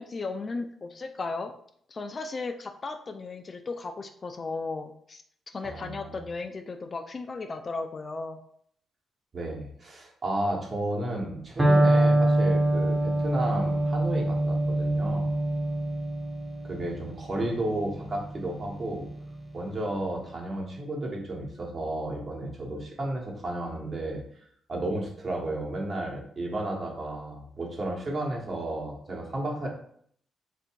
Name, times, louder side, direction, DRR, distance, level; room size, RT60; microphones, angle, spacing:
voice 1, 0.0-1.5 1.9-5.2 5.5-8.4, left 3 dB, 35° left, 6 dB, 0.3 m, -35 dB
voice 2, 5.6-6.2 9.3-15.3 16.6-19.0 19.5-24.2 24.7-29.7, right 1 dB, 40° right, -1 dB, 1.1 m, -32 dB
Electric guitar, 11.6-19.4, right 1 dB, 10° right, 0.8 m, -25 dB
3.3 x 2.6 x 4.4 m, 0.64 s
cardioid pair, 115°, 0 cm